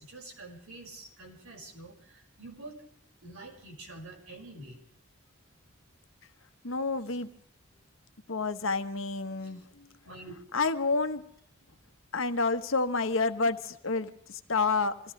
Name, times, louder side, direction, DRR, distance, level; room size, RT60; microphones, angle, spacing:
voice 1, 0.0-2.8 3.2-4.8 9.4-9.5 10.0-10.3, right 2 dB, 90° right, 0 dB, 5.7 m, -47 dB
voice 2, 6.6-7.3 8.3-9.6 10.5-11.2 12.1-14.9, left 3 dB, 70° left, 9 dB, 1.2 m, -29 dB
26.0 x 16.5 x 3.3 m, 0.68 s
head